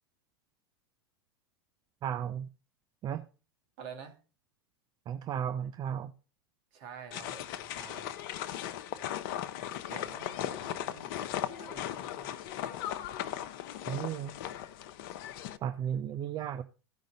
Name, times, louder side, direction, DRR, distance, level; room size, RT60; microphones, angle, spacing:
voice 1, 2.0-2.5 3.0-3.3 5.1-6.1 13.9-14.3 15.6-16.6, right 9 dB, 35° right, 0.6 m, -34 dB
voice 2, 3.8-4.2 6.7-8.1 9.9-11.2 11.6-12.3, right 6 dB, 55° right, 2.1 m, -48 dB
sound 1, 7.1-15.6, left 11 dB, 55° left, 0.7 m, -38 dB
15.0 x 5.1 x 3.9 m
hypercardioid pair, 95°, 13 cm